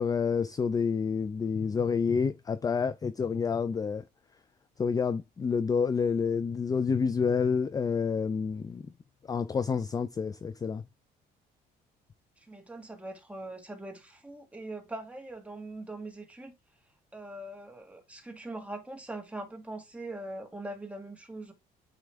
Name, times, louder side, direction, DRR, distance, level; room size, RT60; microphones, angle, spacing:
voice 1, 0.0-4.0 4.8-8.9 9.3-10.8, left 5 dB, 20° left, 0.4 m, -28 dB
voice 2, 12.4-16.5 17.1-21.5, right 2 dB, 10° right, 1.7 m, -42 dB
9.1 x 3.1 x 3.4 m
cardioid pair, 110°, 17 cm